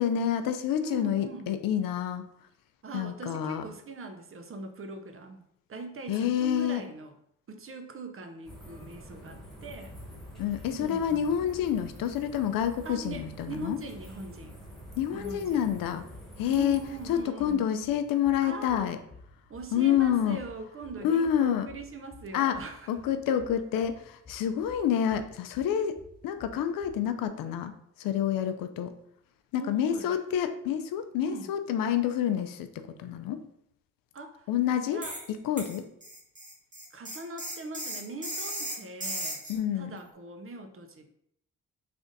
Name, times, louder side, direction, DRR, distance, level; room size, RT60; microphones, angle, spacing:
voice 1, 0.0-2.3 2.9-3.6 6.1-6.8 10.4-13.8 15.0-16.0 16.4-16.8 17.1-19.0 19.7-20.4 21.0-21.7 22.3-22.6 22.9-26.0 26.2-27.7 28.0-28.9 29.5-32.7 33.0-33.4 34.5-35.0 35.4-35.8 39.5-39.9, left 9 dB, 80° left, 9 dB, 0.5 m, -28 dB
voice 2, 0.7-1.5 2.8-5.4 5.7-7.1 7.5-10.0 10.7-11.3 12.8-14.6 15.1-15.8 16.5-17.7 18.4-18.9 19.5-22.9 25.8-25.9 29.5-30.2 31.2-31.5 34.1-34.5 34.9-35.2 36.9-39.4 39.7-41.1, right 3 dB, 40° right, 6 dB, 0.7 m, -41 dB
sound 1, 8.4-17.2, equal, ahead, 1.3 m, -47 dB
sound 2, 9.2-27.3, left 3 dB, 30° left, 0.8 m, -54 dB
sound 3, 35.0-35.3 35.6-39.6, right 1 dB, 25° right, 1.3 m, -36 dB
3.3 x 2.5 x 3.9 m, 0.71 s
supercardioid pair, 55°, 33 cm